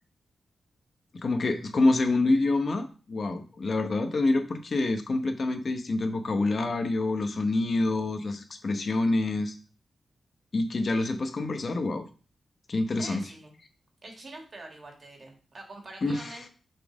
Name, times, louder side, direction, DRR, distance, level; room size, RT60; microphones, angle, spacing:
voice 1, 1.2-9.5 10.5-12.0 12.7-13.3 16.0-16.3, left 2 dB, 45° left, 7 dB, 0.9 m, -27 dB
voice 2, 13.0-13.5 14.0-16.5, right 2 dB, 40° right, 2 dB, 1.8 m, -45 dB
6.6 x 4.1 x 5.0 m, 0.37 s
wide cardioid pair, 140°, 0 cm